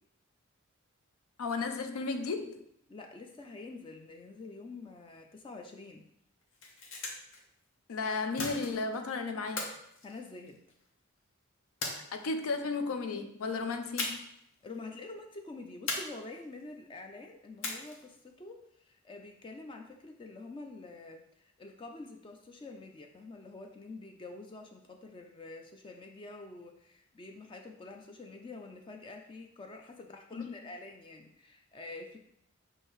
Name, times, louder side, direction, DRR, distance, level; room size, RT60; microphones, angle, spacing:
voice 1, 1.4-2.6 7.9-9.6 12.1-14.2 30.3-30.4, left 4 dB, 90° left, 7 dB, 0.5 m, -34 dB
voice 2, 2.9-6.0 10.0-10.6 14.6-32.2, left 3 dB, 25° left, 3 dB, 0.3 m, -47 dB
sound 1, 6.4-7.4 8.4-9.0 9.6-10.8 11.8-12.6 14.0-14.4 14.7-14.8 15.9-16.6 17.6-18.2, left 3 dB, 65° left, 0.8 m, -38 dB
6.4 x 2.7 x 3.0 m, 0.74 s
head